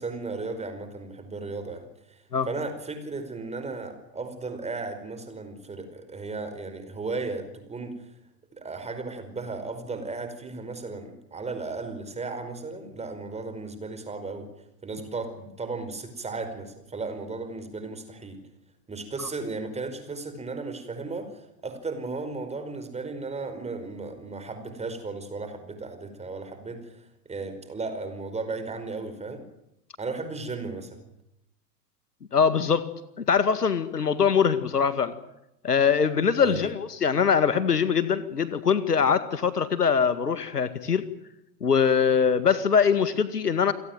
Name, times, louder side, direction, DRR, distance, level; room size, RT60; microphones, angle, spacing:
voice 1, 0.0-2.2 2.5-7.9 8.5-14.5 14.8-18.4 18.9-29.4 30.0-31.0 36.4-36.7, right 3 dB, 15° right, 8 dB, 5.0 m, -35 dB
voice 2, 32.3-32.9 33.2-35.1 35.6-41.1 41.6-43.7, left 6 dB, 75° left, 13 dB, 2.1 m, -22 dB
29.0 x 18.0 x 9.3 m, 0.86 s
figure-of-eight pair, 90°, 47 cm